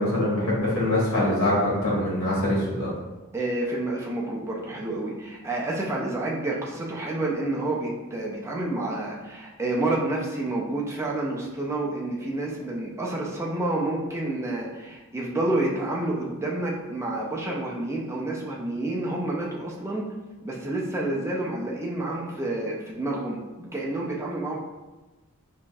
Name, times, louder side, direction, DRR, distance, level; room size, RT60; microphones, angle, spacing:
voice 1, 0.0-2.9, left 1 dB, 65° left, -7 dB, 1.4 m, -24 dB
voice 2, 3.3-20.0 20.4-24.6, right 2 dB, 10° right, -3 dB, 0.5 m, -29 dB
4.8 x 2.6 x 2.3 m, 1.2 s
head